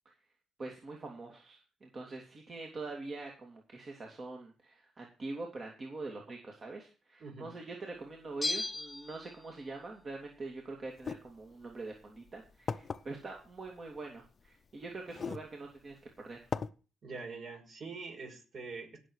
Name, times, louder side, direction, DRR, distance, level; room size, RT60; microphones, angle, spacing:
voice 1, 0.6-16.4, right 3 dB, 40° right, 1 dB, 2.8 m, -44 dB
voice 2, 7.2-7.5 17.0-19.0, right 4 dB, 55° right, 3 dB, 5.4 m, -44 dB
Bell, 8.4-9.8 10.1-10.2, left 2 dB, 10° left, 1.4 m, -37 dB
sound 1, 11.0-11.2 12.0-12.1 12.7-13.0 14.2-14.3 15.1-15.5 15.9-16.0 16.5-16.7, left 5 dB, 40° left, 0.7 m, -36 dB
18.0 x 7.1 x 4.8 m, 0.35 s
cardioid pair, 90°, 0 cm